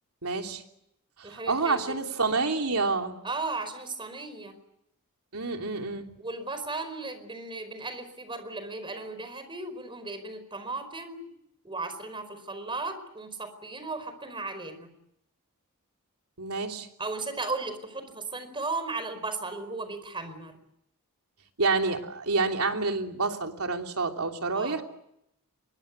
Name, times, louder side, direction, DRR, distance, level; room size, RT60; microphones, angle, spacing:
voice 1, 0.2-0.6 1.2-3.2 5.3-6.1 16.4-16.9 21.6-24.8, right 3 dB, 75° right, 3 dB, 3.2 m, -28 dB
voice 2, 1.2-2.0 3.2-4.5 6.2-11.3 11.6-14.9 17.0-20.6 24.5-24.8, right 3 dB, 25° right, 11 dB, 4.8 m, -36 dB
25.5 x 23.5 x 8.4 m, 0.77 s
head